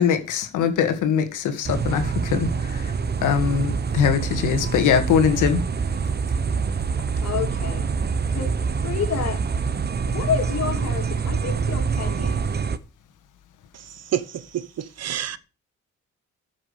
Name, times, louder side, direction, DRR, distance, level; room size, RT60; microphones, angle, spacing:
voice 1, 0.0-2.9 3.2-5.6, left 7 dB, 85° left, 1.9 m, -22 dB
sound 1, 1.6-12.8, right 5 dB, 35° right, 1.0 m, -25 dB
voice 2, 7.2-7.8 8.3-8.5 8.8-9.4 10.1-12.5, left 7 dB, 60° left, 3.2 m, -29 dB
voice 3, 14.1-15.4, right 11 dB, 55° right, 1.0 m, -28 dB
9.2 x 6.3 x 6.7 m
cardioid pair, 90°, 30 cm